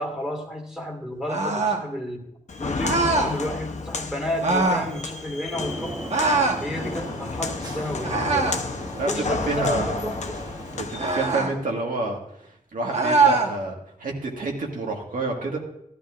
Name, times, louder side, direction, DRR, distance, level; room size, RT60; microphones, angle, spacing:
voice 1, 0.0-2.3 2.6-6.0 6.6-8.6 9.1-10.4, left 1 dB, 5° right, 0 dB, 2.0 m, -32 dB
sound 1, 1.3-1.9 2.8-3.3 4.4-4.9 6.1-6.6 8.0-8.7 10.9-11.5 12.9-13.5, right 3 dB, 50° right, 1.2 m, -22 dB
Walk footsteps, 2.5-11.3, left 4 dB, 55° left, 0.8 m, -32 dB
sound 2, 5.5-10.9, right 1 dB, 30° right, 1.2 m, -36 dB
voice 2, 9.0-9.9 10.7-13.7 14.0-15.6, right 2 dB, 75° right, 0 dB, 1.9 m, -28 dB
14.5 x 12.0 x 2.5 m, 0.79 s
wide cardioid pair, 80°, 14 cm